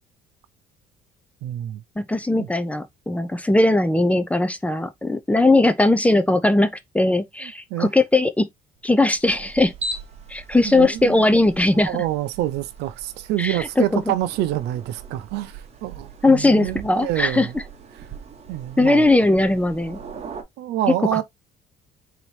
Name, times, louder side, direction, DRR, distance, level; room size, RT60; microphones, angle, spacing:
voice 1, 1.4-1.8 2.4-2.5 7.4-7.9 10.6-11.3 11.7-17.6 18.5-19.2 20.6-21.2, right 14 dB, 85° right, 0.6 m, -27 dB
voice 2, 2.0-8.5 8.8-9.7 10.3-11.9 13.4-14.0 16.2-17.5 18.8-20.0 21.1-21.2, left 2 dB, 10° left, 0.5 m, -19 dB
sound 1, 8.8-20.4, right 3 dB, 40° right, 1.0 m, -40 dB
4.0 x 2.9 x 3.2 m
cardioid pair, 110°, 17 cm